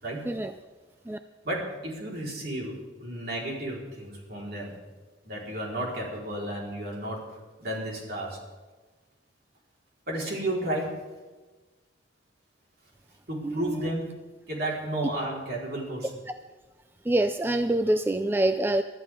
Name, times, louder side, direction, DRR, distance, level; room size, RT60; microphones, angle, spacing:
voice 1, 0.0-0.3 1.4-4.7 5.2-8.4 10.1-11.0 13.3-14.1 14.5-16.1, right 1 dB, 55° right, -2 dB, 4.4 m, -33 dB
voice 2, 13.4-13.7 17.1-18.8, right 1 dB, 10° right, 9 dB, 0.3 m, -25 dB
23.0 x 13.5 x 3.7 m, 1.3 s
head